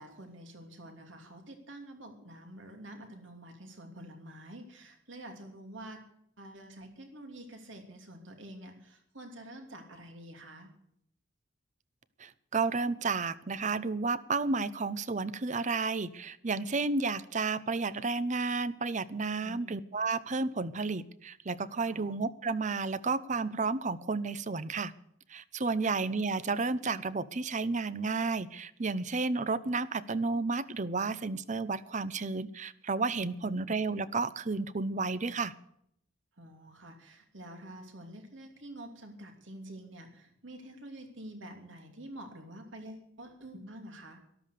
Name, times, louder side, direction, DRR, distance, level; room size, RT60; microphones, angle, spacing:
voice 1, 0.0-6.0 6.4-10.7 19.4-19.8 21.9-22.1 25.8-26.0 33.4-33.8 36.4-44.2, right 1 dB, 70° right, 4 dB, 2.9 m, -48 dB
voice 2, 12.2-24.9 25.3-35.5, right 4 dB, 40° right, 17 dB, 0.7 m, -32 dB
13.0 x 12.5 x 6.7 m, 0.72 s
head